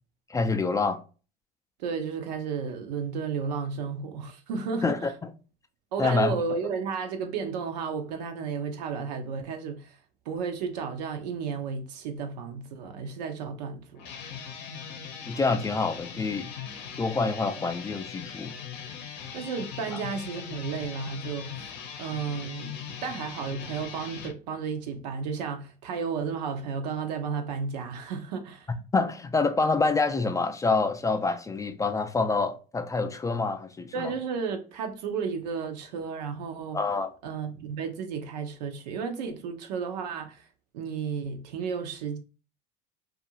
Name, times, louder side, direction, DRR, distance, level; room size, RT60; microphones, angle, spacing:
voice 1, 0.3-1.0 4.8-5.3 6.0-6.3 15.3-16.5 17.0-18.6 19.9-20.0 28.9-34.1 36.7-37.1, left 3 dB, 15° left, 0.3 m, -27 dB
voice 2, 1.8-5.0 5.9-10.0 10.3-14.0 19.3-21.7 22.0-28.7 33.9-36.8 37.2-40.5 40.7-42.2, right 5 dB, 85° right, 0.6 m, -33 dB
sound 1, 14.0-24.3, left 7 dB, 60° left, 0.6 m, -40 dB
2.6 x 2.4 x 2.8 m
supercardioid pair, 90°, 21 cm